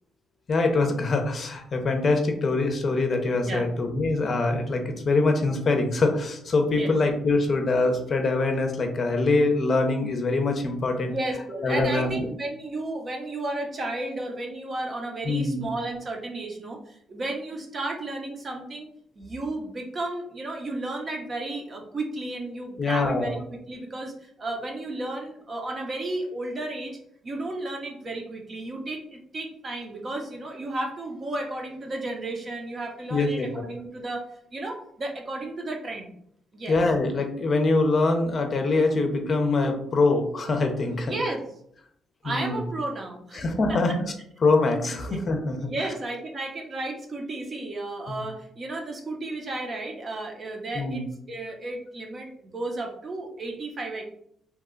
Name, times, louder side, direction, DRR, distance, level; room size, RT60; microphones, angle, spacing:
voice 1, 0.5-11.1 11.6-12.3 15.2-15.7 22.8-23.3 33.1-33.6 36.7-41.1 42.2-42.6 43.3-44.1 44.4-45.7 48.1-48.2 50.7-51.0, left 3 dB, 45° left, 4 dB, 0.6 m, -24 dB
voice 2, 11.1-18.9 19.1-27.0 27.2-36.1 36.5-36.8 40.9-41.4 42.2-44.0 45.1-45.2 45.6-54.0, right 2 dB, 40° right, 2 dB, 0.7 m, -33 dB
2.9 x 2.2 x 3.7 m, 0.69 s
cardioid pair, 90°, 0 cm